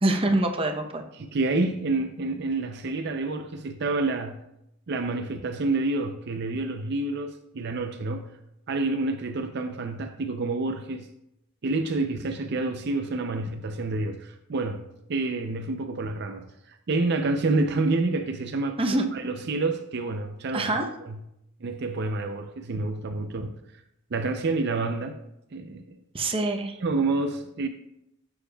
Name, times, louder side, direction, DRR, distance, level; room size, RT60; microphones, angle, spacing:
voice 1, 0.0-1.0 18.8-19.1 20.5-20.9 26.1-26.8, right 2 dB, 30° right, 3 dB, 0.8 m, -25 dB
voice 2, 1.2-4.4 4.9-8.4 8.7-11.1 11.6-20.7 21.0-21.2 21.6-23.6 24.1-25.2 25.5-25.9 26.8-27.7, right 3 dB, 55° right, 6 dB, 0.5 m, -28 dB
11.0 x 7.1 x 2.3 m, 0.82 s
head